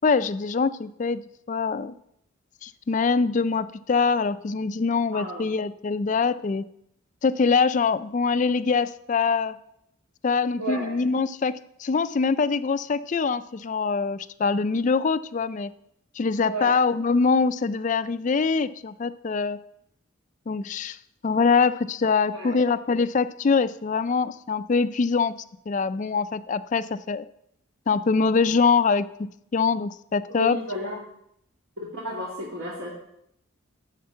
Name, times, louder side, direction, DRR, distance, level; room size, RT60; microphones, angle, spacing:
voice 1, 0.0-1.2 1.5-1.9 2.6-6.6 7.2-9.6 10.2-11.5 11.8-15.7 16.2-19.6 20.5-21.0 21.2-25.3 25.7-27.2 27.9-29.1 29.5-30.6, left 5 dB, 35° left, 13 dB, 0.3 m, -23 dB
voice 2, 5.1-5.5 10.6-11.0 16.5-16.8 22.3-22.6 30.3-31.0 31.9-32.9, right 1 dB, 75° right, -5 dB, 2.3 m, -33 dB
12.5 x 4.4 x 7.6 m, 0.75 s
head